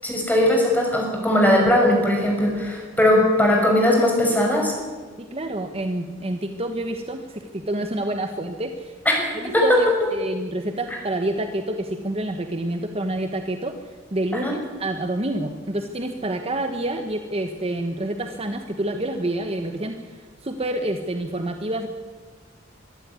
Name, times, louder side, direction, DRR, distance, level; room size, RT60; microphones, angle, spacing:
voice 1, 0.0-4.7 9.1-9.2 9.5-10.1 14.4-14.6, left 1 dB, 10° left, 0 dB, 6.0 m, -19 dB
voice 2, 5.2-8.9 9.3-13.7 14.1-20.0 20.4-21.9, right 1 dB, 30° right, 6 dB, 1.2 m, -28 dB
23.5 x 12.0 x 9.6 m, 1.4 s
head